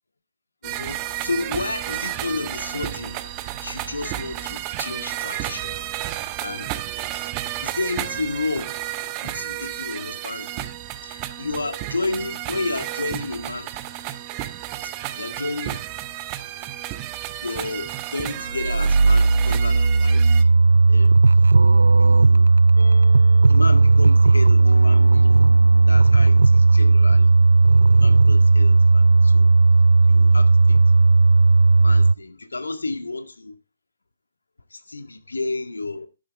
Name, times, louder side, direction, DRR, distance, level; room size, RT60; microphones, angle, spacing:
voice 1, 0.6-3.3 3.6-5.8 6.4-6.7 7.6-8.8 9.2-10.7 11.0-13.7 14.8-15.8 17.4-20.4 20.9-21.2 22.0-22.5 23.5-25.4 25.9-27.3 27.9-29.5 30.1-31.1 31.8-33.5 34.7-36.1, left 3 dB, 70° left, 1.9 m, -31 dB
sound 1, 0.6-20.4, right 14 dB, 20° right, 0.8 m, -32 dB
sound 2, 18.5-32.1, right 3 dB, 65° right, 0.5 m, -15 dB
sound 3, 22.8-28.8, equal, 85° left, 3.9 m, -40 dB
12.0 x 11.5 x 3.4 m
figure-of-eight pair, 140°, 0 cm